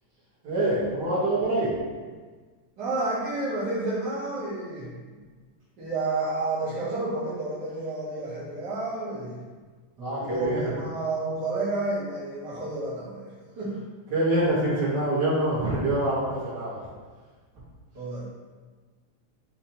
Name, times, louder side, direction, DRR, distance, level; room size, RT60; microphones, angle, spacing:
voice 1, 0.4-1.7 10.0-10.7 14.1-16.8, right 1 dB, 50° right, -8 dB, 1.3 m, -25 dB
voice 2, 2.8-5.2 5.8-9.4 10.2-13.8 17.9-18.2, right 2 dB, 70° right, -9 dB, 1.0 m, -30 dB
7.0 x 2.6 x 2.8 m, 1.4 s
omnidirectional pair, 3.4 m